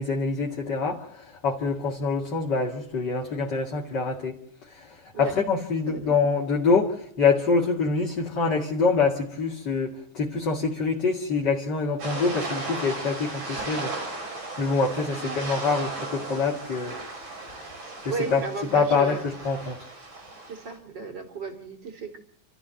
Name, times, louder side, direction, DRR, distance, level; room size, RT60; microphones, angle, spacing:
voice 1, 0.0-4.4 4.7-13.9 14.6-17.0 17.5-17.7 18.0-19.8, left 4 dB, 40° left, -1 dB, 2.6 m, -25 dB
sound 1, 12.0-20.8, right 2 dB, 90° right, 7.2 m, -36 dB
voice 2, 15.2-15.5 17.8-19.2 20.5-22.2, right 4 dB, 35° right, 5 dB, 3.6 m, -35 dB
29.0 x 14.0 x 7.7 m, 0.71 s
omnidirectional pair, 3.4 m